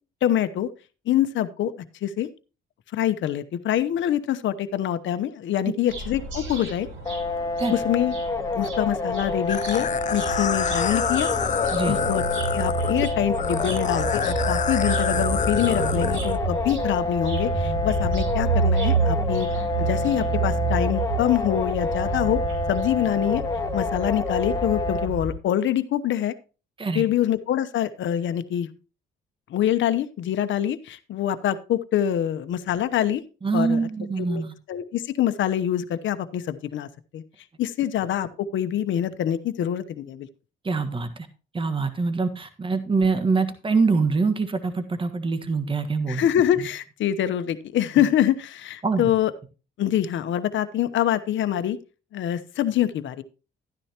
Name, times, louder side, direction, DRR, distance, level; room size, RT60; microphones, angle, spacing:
voice 1, 0.2-0.7 1.1-1.7 2.0-2.3 2.9-6.9 7.7-8.1 8.5-11.3 11.9-12.2 12.5-19.5 19.8-22.4 22.7-23.4 23.7-26.3 26.9-28.7 29.5-33.2 33.5-33.8 34.2-34.4 34.7-37.2 37.6-40.3 46.1-49.3 49.8-51.8 52.1-53.2, left 11 dB, 70° left, 11 dB, 1.0 m, -25 dB
sound 1, 5.9-25.3, right 4 dB, 85° right, 4.6 m, -29 dB
sound 2, 7.1-25.1, left 3 dB, 15° left, 1.5 m, -28 dB
sound 3, 9.5-16.4, left 8 dB, 40° left, 0.5 m, -28 dB
voice 2, 33.4-34.5 40.6-41.3 41.5-46.2 48.8-49.1, right 4 dB, 25° right, 9 dB, 1.5 m, -24 dB
13.0 x 10.0 x 3.0 m, 0.33 s
cardioid pair, 90°, 20 cm